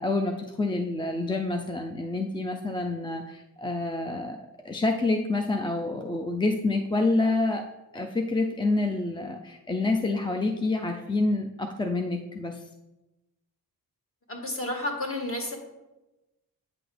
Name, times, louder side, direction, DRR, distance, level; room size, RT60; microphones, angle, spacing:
voice 1, 0.0-4.4 4.6-7.6 7.9-12.6, left 2 dB, 15° left, 3 dB, 0.4 m, -27 dB
voice 2, 14.3-15.6, left 1 dB, 35° left, 1 dB, 1.6 m, -31 dB
8.7 x 6.0 x 3.3 m, 1.0 s
wide cardioid pair, 115°, 37 cm